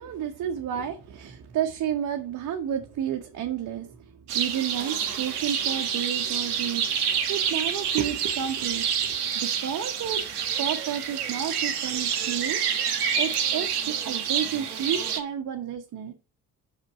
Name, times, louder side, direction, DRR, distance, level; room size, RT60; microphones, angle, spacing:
voice 1, 0.0-10.2 10.6-16.1, right 9 dB, 40° right, 3 dB, 0.9 m, -31 dB
sound 1, 4.3-15.2, right 8 dB, 75° right, 0.9 m, -28 dB
6.1 x 5.2 x 4.1 m, 0.30 s
figure-of-eight pair, 50°, 46 cm